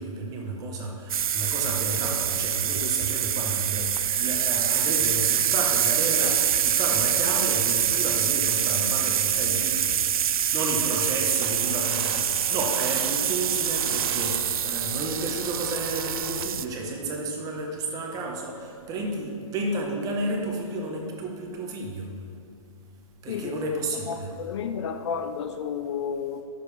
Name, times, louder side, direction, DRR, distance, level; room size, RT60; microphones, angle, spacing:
voice 1, 0.0-9.9 10.5-22.1 23.2-24.3, right 2 dB, 20° right, 1 dB, 1.0 m, -32 dB
sound 1, 1.1-16.6, right 9 dB, 85° right, 0.4 m, -25 dB
sound 2, 11.4-16.4, right 6 dB, 45° right, 0.6 m, -39 dB
voice 2, 23.3-23.7 24.1-26.4, left 7 dB, 55° left, 8 dB, 0.5 m, -31 dB
10.5 x 6.8 x 3.3 m, 2.8 s
hypercardioid pair, 145°, 18 cm